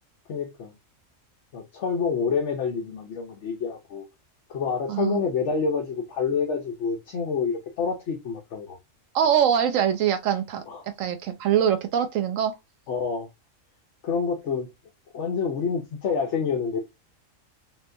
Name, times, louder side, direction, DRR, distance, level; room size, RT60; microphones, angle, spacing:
voice 1, 0.3-0.7 1.5-4.0 4.5-8.8 10.7-10.9 12.9-13.3 14.0-14.7 15.1-16.8, left 5 dB, 65° left, 1.1 m, -27 dB
voice 2, 4.9-5.2 9.1-10.6 11.0-12.5, right 9 dB, 80° right, 1.0 m, -23 dB
5.9 x 2.4 x 2.6 m
omnidirectional pair, 1.3 m